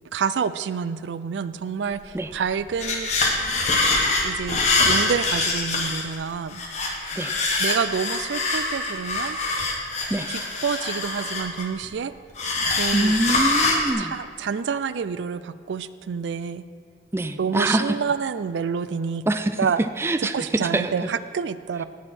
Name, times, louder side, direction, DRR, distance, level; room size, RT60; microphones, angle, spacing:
voice 1, 0.1-3.1 3.8-3.9 4.2-4.6 4.9-6.6 7.6-9.4 10.3-12.1 12.7-13.2 14.0-16.6 17.4-19.3 19.6-19.8 20.3-21.8, right 6 dB, 85° right, 15 dB, 0.4 m, -28 dB
sound 1, 2.2-2.3 2.5-6.2 6.5-11.9 12.4-13.9, left 2 dB, 40° left, 1.4 m, -24 dB
voice 2, 12.9-14.1 17.1-18.0 19.3-21.1, right 1 dB, 15° right, 10 dB, 0.3 m, -25 dB
17.5 x 6.4 x 4.3 m, 2.1 s
head